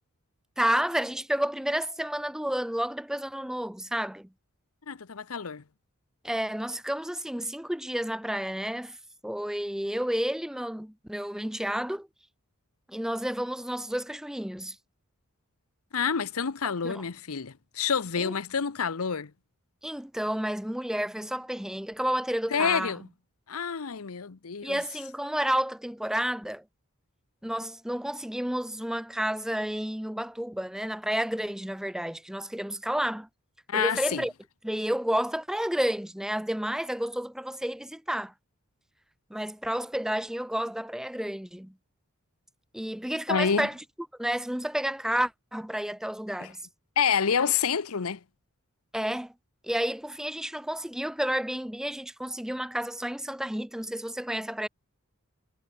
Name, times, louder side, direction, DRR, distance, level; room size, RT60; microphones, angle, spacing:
voice 1, 0.6-4.3 6.2-9.0 9.2-12.1 12.9-14.8 16.8-17.0 18.2-18.3 19.8-22.9 24.6-26.6 27.4-33.3 33.7-34.3 34.6-38.3 39.3-41.7 42.7-43.8 44.2-46.6 48.9-49.3 49.6-54.7, equal, ahead, 0.5 m, -31 dB
voice 2, 4.9-5.6 15.9-19.3 22.5-23.1 23.5-24.8 33.7-34.3 43.3-43.7 46.4-46.5 47.0-48.2, left 6 dB, 80° left, 0.8 m, -28 dB
head